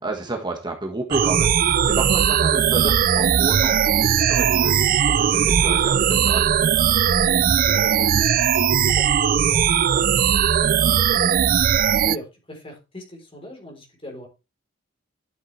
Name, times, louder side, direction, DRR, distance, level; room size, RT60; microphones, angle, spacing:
voice 1, 0.0-6.5, right 2 dB, 25° right, 2 dB, 1.6 m, -30 dB
sound 1, 1.1-12.2, right 8 dB, 45° right, 0.4 m, -19 dB
voice 2, 7.2-11.5 12.0-14.3, left 1 dB, 30° left, 2 dB, 3.9 m, -41 dB
12.0 x 7.3 x 3.3 m, 0.28 s
head